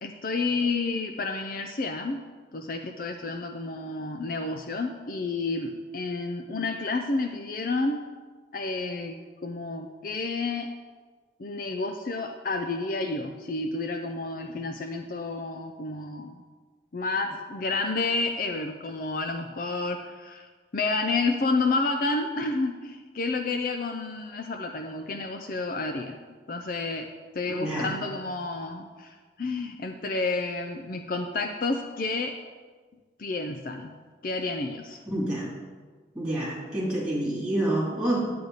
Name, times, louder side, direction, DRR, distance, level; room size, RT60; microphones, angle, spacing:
voice 1, 0.0-2.2 2.5-8.0 8.5-10.7 11.4-16.4 16.9-20.5 20.7-26.2 26.5-27.1 27.3-32.4 33.2-33.9 34.2-35.0, left 3 dB, 45° left, 5 dB, 0.5 m, -30 dB
voice 2, 27.5-27.9 35.1-35.5 36.1-38.3, right 1 dB, 5° right, -6 dB, 2.7 m, -28 dB
10.5 x 8.5 x 4.0 m, 1.5 s
head